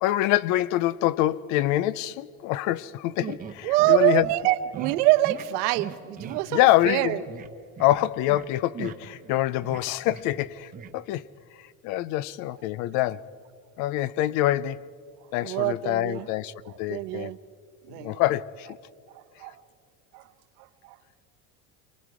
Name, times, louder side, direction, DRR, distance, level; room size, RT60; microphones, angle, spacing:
voice 1, 0.0-4.3 6.5-7.2 7.8-11.2 11.8-13.3 13.8-14.9 15.3-17.3 18.0-18.7, left 15 dB, 45° left, 0.4 m, -25 dB
sound 1, 3.2-4.3 4.7-5.0 5.2-5.4 5.7-6.4 6.8-7.0 7.3-7.5 7.8-8.5 8.7-10.5 10.7-10.9, right 8 dB, 20° right, 0.9 m, -38 dB
voice 2, 3.6-7.2 15.4-16.3 16.9-17.4 17.9-18.2 19.2-19.5 20.1-20.2 20.8-20.9, right 17 dB, 80° right, 1.0 m, -25 dB
29.0 x 23.5 x 4.8 m
cardioid pair, 165°, 45 cm